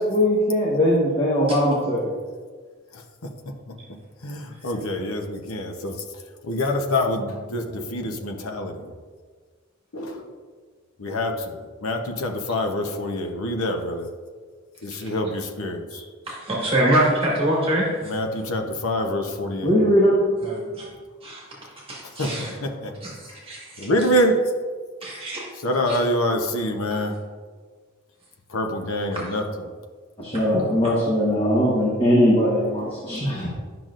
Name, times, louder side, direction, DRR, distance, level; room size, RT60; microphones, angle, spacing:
voice 1, 0.0-2.1 15.9-16.0 19.6-20.2 30.2-33.5, equal, 25° left, -6 dB, 1.2 m, -20 dB
voice 2, 4.2-6.0 6.4-8.9 9.9-10.3 11.0-14.1 14.8-15.9 18.0-19.8 22.2-22.9 23.8-24.4 25.5-27.2 28.5-29.7 30.5-30.6 30.9-31.0, left 1 dB, 85° left, 3 dB, 0.9 m, -26 dB
voice 3, 16.3-18.1 20.4-20.9 21.2-21.4 21.9-22.5 23.0-23.1 23.4-23.9 25.0-25.4 25.9-26.0, right 1 dB, 25° right, -5 dB, 1.5 m, -24 dB
10.5 x 5.9 x 2.5 m, 1.6 s
head